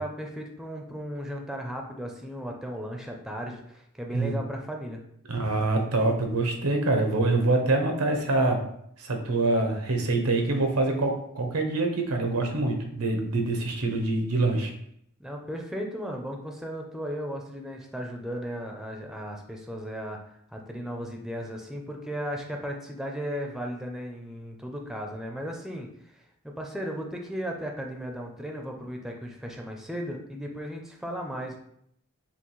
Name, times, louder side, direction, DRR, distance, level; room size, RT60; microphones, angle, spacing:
voice 1, 0.0-5.0 15.2-20.2 20.5-31.6, equal, ahead, 1 dB, 0.4 m, -36 dB
voice 2, 5.3-8.6 9.0-14.7, right 2 dB, 85° right, 3 dB, 0.8 m, -25 dB
5.7 x 2.4 x 3.1 m, 0.71 s
head